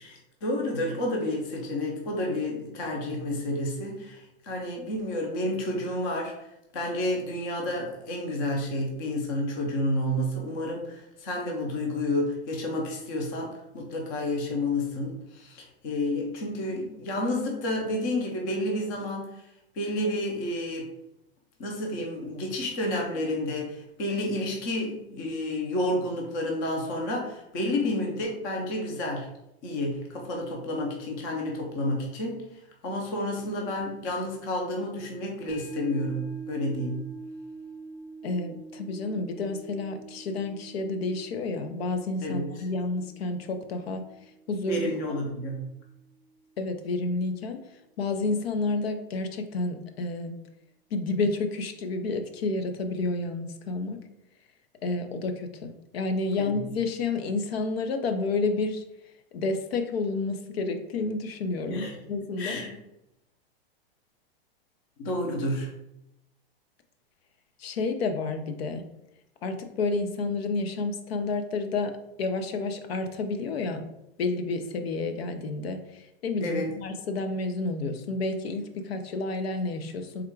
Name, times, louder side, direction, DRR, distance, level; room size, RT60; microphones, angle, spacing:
voice 1, 0.0-6.5 6.7-19.4 19.7-20.8 21.6-29.3 29.6-32.4 32.8-37.0 42.2-42.4 44.7-45.7 56.4-56.6 61.7-61.9 62.4-62.7 65.0-65.7 76.4-76.7, left 1 dB, 20° left, 0 dB, 0.5 m, -30 dB
sound 1, 35.5-45.9 46.2-46.3, right 2 dB, 60° left, 1.1 m, -43 dB
voice 2, 38.2-44.0 44.5-44.9 46.6-47.6 48.0-50.4 50.9-54.0 54.8-58.8 59.3-62.6 67.6-68.8 69.4-71.9 72.2-73.9 74.2-80.3, left 3 dB, 80° left, 7 dB, 0.7 m, -30 dB
3.6 x 2.3 x 4.5 m, 0.85 s
supercardioid pair, 175°, 30 cm